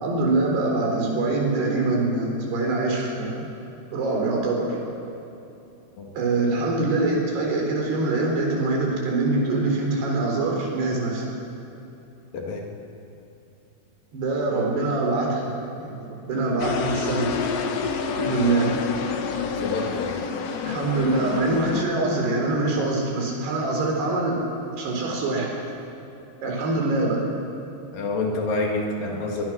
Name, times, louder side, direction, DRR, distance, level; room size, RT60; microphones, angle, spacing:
voice 1, 0.0-3.5 3.9-4.8 6.2-11.3 14.1-15.5 15.8-17.4 18.1-18.8 20.6-24.4 24.8-25.5 26.4-27.2, right 2 dB, 75° right, -1 dB, 6.0 m, -24 dB
voice 2, 12.3-12.7 19.5-20.2 27.9-29.5, left 2 dB, 60° left, 1 dB, 3.6 m, -28 dB
sound 1, 16.6-21.9, left 6 dB, 75° left, 1.4 m, -28 dB
23.0 x 21.0 x 6.1 m, 2.9 s
omnidirectional pair, 4.7 m